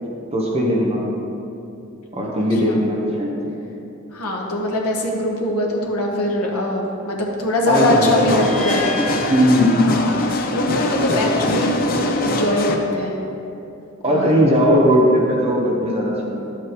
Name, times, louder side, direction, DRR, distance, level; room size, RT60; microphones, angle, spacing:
voice 1, 0.3-1.0 2.1-3.3 7.7-8.4 9.3-9.9 11.0-11.7 14.0-16.5, equal, 30° right, -3 dB, 1.1 m, -18 dB
voice 2, 4.1-8.9 9.9-11.7 12.2-13.2 14.1-14.4, left 1 dB, 80° left, -1 dB, 1.3 m, -22 dB
sound 1, 7.7-12.8, left 2 dB, 40° left, 0.6 m, -23 dB
sound 2, 8.3-10.4, left 1 dB, ahead, 1.4 m, -31 dB
11.0 x 8.1 x 3.1 m, 2.7 s
head